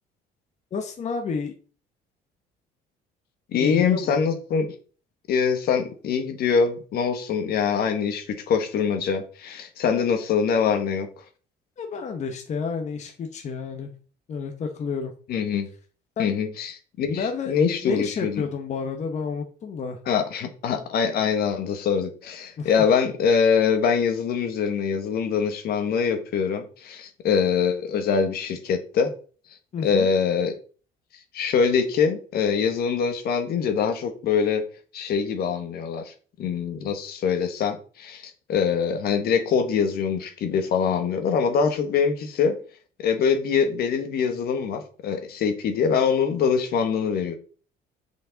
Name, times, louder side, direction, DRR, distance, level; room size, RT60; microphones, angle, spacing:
voice 1, 0.7-1.5 3.6-4.2 11.8-13.9 14.3-15.1 16.2-16.4 17.1-20.0 22.6-22.7 29.7-30.1, left 5 dB, 45° left, 4 dB, 1.0 m, -30 dB
voice 2, 3.5-4.7 5.3-11.1 15.3-15.7 16.2-18.4 20.1-29.1 29.8-30.6 31.3-34.6 34.9-42.6 43.0-47.4, left 6 dB, 65° left, 6 dB, 1.3 m, -24 dB
6.6 x 5.2 x 3.9 m, 0.40 s
cardioid pair, 110°, 17 cm